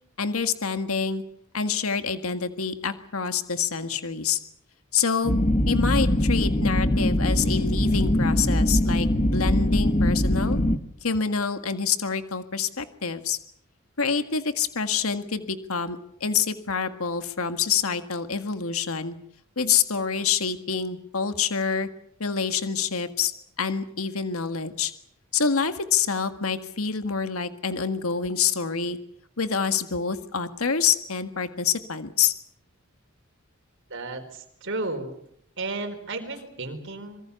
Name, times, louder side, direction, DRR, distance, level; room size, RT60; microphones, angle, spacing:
voice 1, 0.2-1.2 1.5-4.4 4.9-5.4 5.7-10.6 11.0-13.4 14.0-19.1 19.5-21.9 22.2-23.3 23.6-24.9 25.3-29.0 29.4-32.3, left 6 dB, 80° left, 9 dB, 1.8 m, -27 dB
sound 1, 5.2-10.8, left 1 dB, 30° left, 1.4 m, -22 dB
voice 2, 33.9-35.1 35.6-37.2, right 2 dB, 60° right, 6 dB, 4.3 m, -33 dB
26.0 x 23.0 x 7.0 m, 0.70 s
head